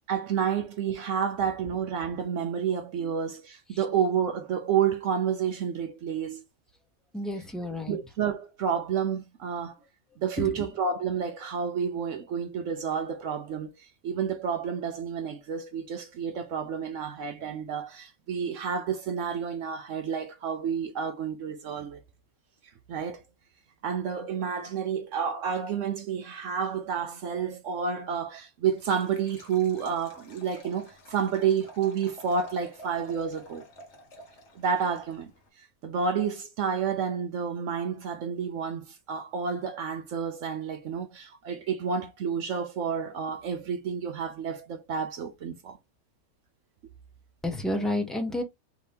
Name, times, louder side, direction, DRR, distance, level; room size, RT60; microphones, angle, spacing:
voice 1, 0.1-6.4 7.9-9.8 10.2-22.0 22.9-23.2 23.8-33.7 34.5-35.3 35.6-45.8, right 7 dB, 65° right, 0.9 m, -30 dB
voice 2, 7.1-8.0 10.4-10.7 47.4-48.4, left 1 dB, ahead, 0.6 m, -30 dB
Liquid, 28.7-35.5, equal, 55° left, 1.3 m, -50 dB
4.3 x 2.8 x 3.4 m
omnidirectional pair, 1.5 m